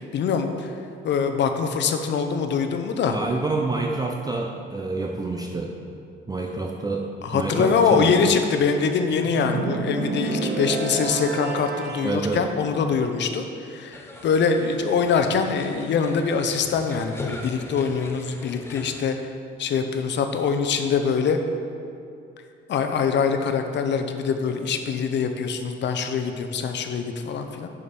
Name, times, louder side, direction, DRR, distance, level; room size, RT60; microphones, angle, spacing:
voice 1, 0.1-0.7 1.0-3.2 7.2-19.2 19.6-21.4 22.7-27.7, left 5 dB, 65° left, 6 dB, 0.7 m, -23 dB
voice 2, 3.1-5.7 6.3-8.2 12.0-12.5, right 3 dB, 20° right, 1 dB, 0.5 m, -28 dB
sound 1, 9.2-12.2, right 4 dB, 55° right, 0.8 m, -29 dB
sound 2, 13.9-19.1, left 1 dB, 10° left, 0.8 m, -40 dB
7.0 x 5.0 x 5.3 m, 2.4 s
cardioid pair, 90°, 20 cm